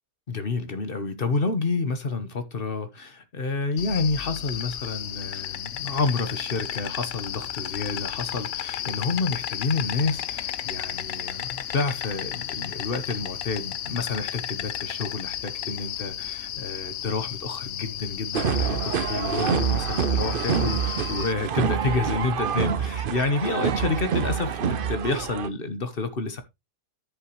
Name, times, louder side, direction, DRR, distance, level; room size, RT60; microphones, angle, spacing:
voice 1, 0.3-26.4, left 3 dB, 40° left, 1.1 m, -29 dB
Insect, 3.8-21.3, left 10 dB, 75° left, 0.5 m, -33 dB
sound 1, 18.3-25.5, right 7 dB, 60° right, 0.5 m, -26 dB
10.5 x 7.7 x 3.0 m
omnidirectional pair, 1.8 m